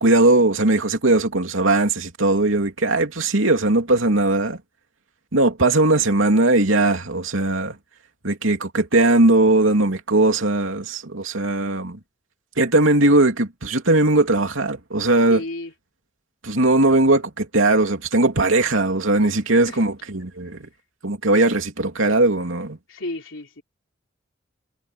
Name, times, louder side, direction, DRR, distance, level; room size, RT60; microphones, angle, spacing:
voice 1, 0.0-4.6 5.3-7.8 8.2-12.0 12.6-15.4 16.4-20.6 21.0-22.8, right 2 dB, 85° right, 2.9 m, -19 dB
voice 2, 15.3-15.7 19.2-19.4 19.6-19.8 22.9-23.6, left 2 dB, 75° left, 3.9 m, -32 dB
head